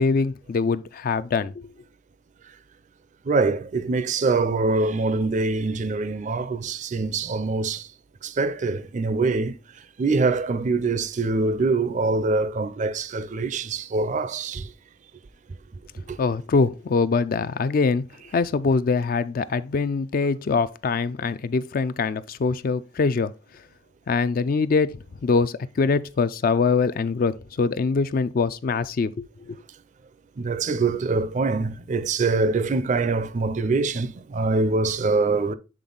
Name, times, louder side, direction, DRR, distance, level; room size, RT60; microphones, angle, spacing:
voice 1, 0.0-1.5 16.2-18.0 18.3-23.3 24.1-29.6, left 4 dB, 50° left, 0.4 m, -23 dB
voice 2, 3.3-7.9 8.2-9.6 10.0-14.7 16.1-16.2 30.4-35.5, right 3 dB, 40° right, 0.4 m, -24 dB
7.6 x 3.6 x 3.9 m
head